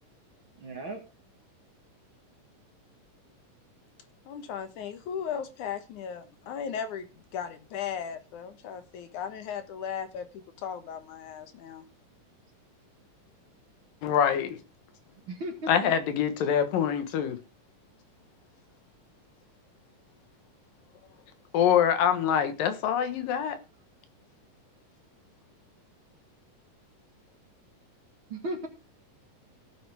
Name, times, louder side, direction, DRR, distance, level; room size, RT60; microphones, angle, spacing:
voice 1, 0.6-1.0 15.3-16.0 28.3-28.7, right 1 dB, 45° right, 2.2 m, -36 dB
voice 2, 4.3-7.1 7.3-10.3 10.6-11.8, left 8 dB, 70° left, 2.6 m, -36 dB
voice 3, 14.0-14.6 15.7-17.4 21.5-23.6, left 8 dB, 90° left, 3.0 m, -25 dB
17.0 x 7.9 x 3.5 m
omnidirectional pair, 3.8 m